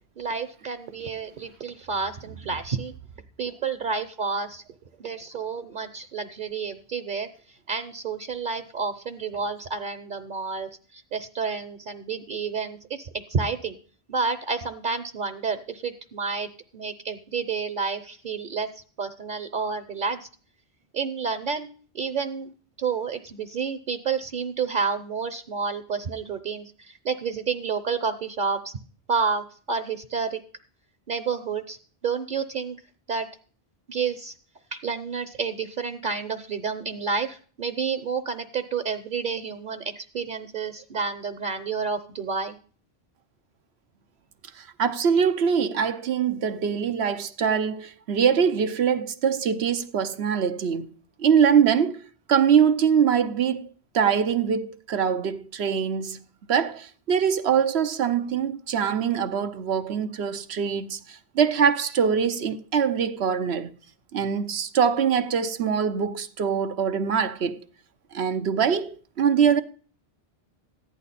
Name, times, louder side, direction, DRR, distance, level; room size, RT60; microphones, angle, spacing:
voice 1, 0.2-2.9 3.4-4.6 5.0-7.3 7.7-13.8 14.1-18.7 19.0-20.3 20.9-21.7 21.9-22.5 22.8-28.7 29.1-30.4 31.1-31.8 32.0-32.8 33.1-33.3 33.9-34.3 34.7-42.6, right 5 dB, 55° right, 0.9 m, -30 dB
voice 2, 44.6-50.9 51.2-52.0 52.3-53.7 53.9-56.2 56.5-63.7 64.1-67.6 68.1-69.6, right 7 dB, 90° right, 1.1 m, -23 dB
14.5 x 10.5 x 4.2 m
omnidirectional pair, 1.0 m